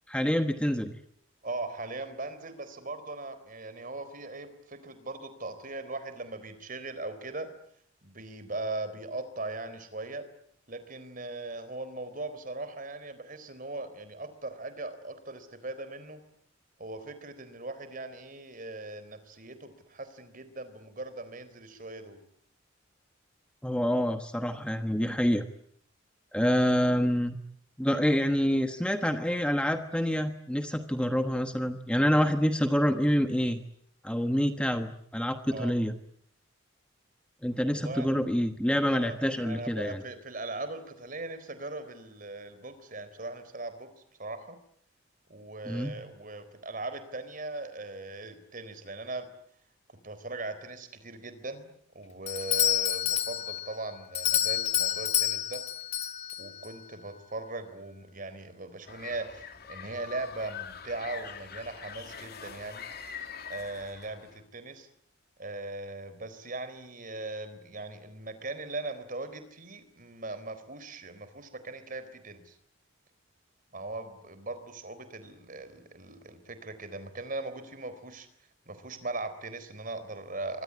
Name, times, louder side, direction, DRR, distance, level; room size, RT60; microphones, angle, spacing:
voice 1, 0.1-0.9 23.6-25.4 26.3-27.4 27.8-33.6 34.0-35.9 37.4-40.0 45.7-45.9, equal, 5° left, 7 dB, 1.3 m, -27 dB
voice 2, 1.4-7.5 8.0-10.3 10.7-16.2 16.8-22.2 35.5-35.7 37.7-38.1 38.9-43.9 44.2-44.6 45.3-49.3 50.0-55.6 56.4-62.8 63.5-64.9 65.4-72.5 73.7-78.3 78.7-80.6, right 2 dB, 40° right, 12 dB, 4.0 m, -39 dB
Doorbell, 52.3-56.7, left 11 dB, 35° left, 2.3 m, -29 dB
sound 1, 58.9-64.4, left 7 dB, 50° left, 2.6 m, -44 dB
26.0 x 23.0 x 9.7 m, 0.67 s
head